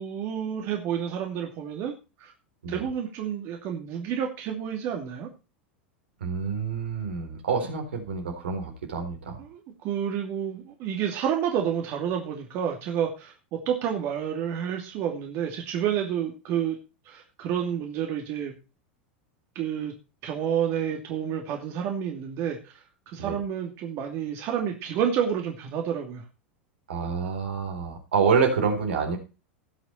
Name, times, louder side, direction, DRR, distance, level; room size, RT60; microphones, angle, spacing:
voice 1, 0.0-1.9 2.2-2.3 2.7-5.3 9.4-16.8 17.1-18.5 19.5-19.9 20.2-22.7 23.1-26.2, right 8 dB, 50° right, 3 dB, 2.5 m, -29 dB
voice 2, 6.2-9.4 23.2-23.4 26.9-29.2, right 5 dB, 80° right, 3 dB, 4.0 m, -27 dB
18.0 x 6.2 x 4.3 m, 0.31 s
hypercardioid pair, 90°, 6 cm